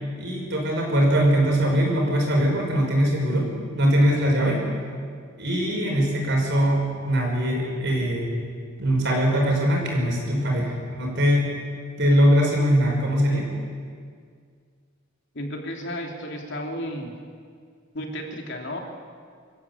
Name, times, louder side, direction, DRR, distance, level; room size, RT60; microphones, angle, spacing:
voice 1, 0.2-4.6 5.4-8.3 8.8-11.5 12.0-13.5, equal, 60° right, 0 dB, 5.8 m, -21 dB
voice 2, 15.3-17.1 17.9-18.8, equal, 60° left, 1 dB, 3.1 m, -33 dB
26.0 x 14.0 x 8.6 m, 2.1 s
head